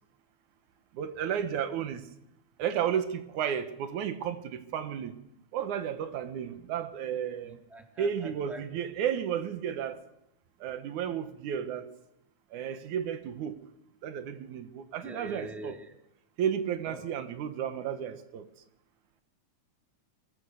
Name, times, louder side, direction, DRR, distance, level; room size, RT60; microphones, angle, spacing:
voice 1, 1.0-2.0 2.6-5.1 5.5-7.6 8.0-10.0 10.6-11.8 12.5-13.6 14.0-15.8 16.4-18.5, right 8 dB, 85° right, 10 dB, 2.7 m, -33 dB
voice 2, 7.4-8.6 15.0-16.0 16.9-17.1, right 1 dB, ahead, 2 dB, 2.6 m, -45 dB
23.0 x 22.5 x 6.5 m, 0.83 s
omnidirectional pair, 3.4 m